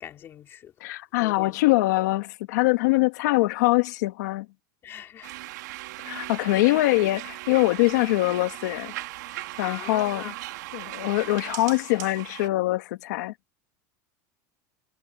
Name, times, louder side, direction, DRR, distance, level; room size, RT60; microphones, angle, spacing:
voice 1, 0.0-0.7 1.2-1.6 4.8-5.3 6.6-6.7 9.6-10.3 10.8-11.0, left 10 dB, 25° left, 3.0 m, -41 dB
voice 2, 0.8-4.5 6.0-8.9 9.6-10.3 10.7-13.3, left 19 dB, 85° left, 1.8 m, -23 dB
sound 1, 5.2-12.5, right 19 dB, 85° right, 2.1 m, -38 dB
cardioid pair, 180°, 9 cm